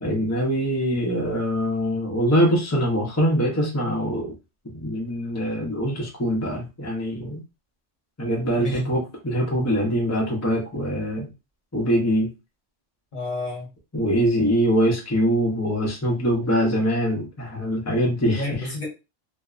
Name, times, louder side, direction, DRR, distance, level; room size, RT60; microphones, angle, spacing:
voice 1, 0.0-4.4 4.7-7.4 8.2-11.3 11.7-12.3 13.9-18.6, equal, 25° left, -2 dB, 0.4 m, -23 dB
voice 2, 8.5-8.9 13.1-13.7 18.3-18.9, left 1 dB, 45° left, -2 dB, 1.0 m, -30 dB
2.5 x 2.1 x 2.4 m, 0.28 s
omnidirectional pair, 1.3 m